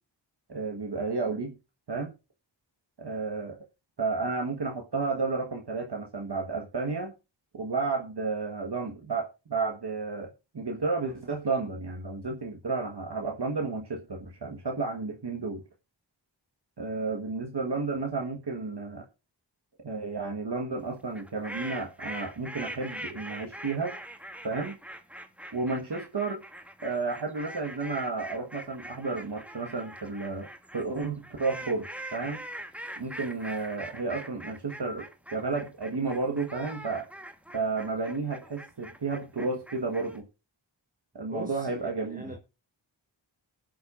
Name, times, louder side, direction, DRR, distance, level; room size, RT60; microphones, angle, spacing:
voice 1, 0.5-1.5 1.9-2.1 3.0-3.6 4.0-7.1 7.5-15.6 16.8-19.1 19.8-23.9 24.4-24.8 25.5-26.4 26.8-32.4 33.0-37.1 37.5-40.2 41.1-42.2, right 4 dB, 60° right, 1.5 m, -32 dB
sound 1, 21.1-40.2, right 1 dB, 5° right, 1.4 m, -43 dB
voice 2, 41.3-42.4, right 1 dB, 20° right, 1.3 m, -41 dB
20.0 x 7.9 x 2.5 m
wide cardioid pair, 65°, 46 cm